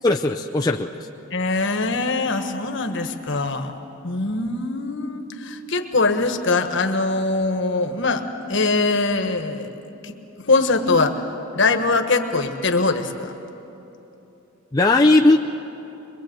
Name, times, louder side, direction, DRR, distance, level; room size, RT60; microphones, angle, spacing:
voice 1, 0.0-1.0 14.7-15.4, left 2 dB, 20° left, 1 dB, 0.5 m, -17 dB
voice 2, 1.3-3.7 4.0-9.7 10.0-11.2 11.5-13.3, left 3 dB, 60° left, 6 dB, 1.4 m, -22 dB
23.0 x 22.0 x 7.9 m, 3.0 s
head